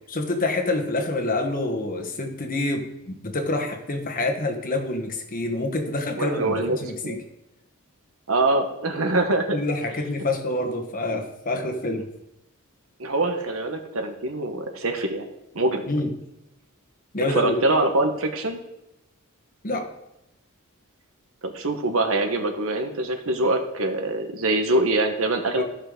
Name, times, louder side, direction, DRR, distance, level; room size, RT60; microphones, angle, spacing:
voice 1, 0.1-7.2 9.5-12.1 15.9-16.1 17.1-17.6 19.6-19.9 25.6-25.7, left 2 dB, 40° left, 4 dB, 1.2 m, -27 dB
voice 2, 6.2-6.8 7.0-7.2 8.3-9.6 13.0-15.3 15.5-15.8 17.3-18.6 21.4-25.6, right 2 dB, 70° right, 6 dB, 1.2 m, -24 dB
15.0 x 5.8 x 3.7 m, 0.90 s
head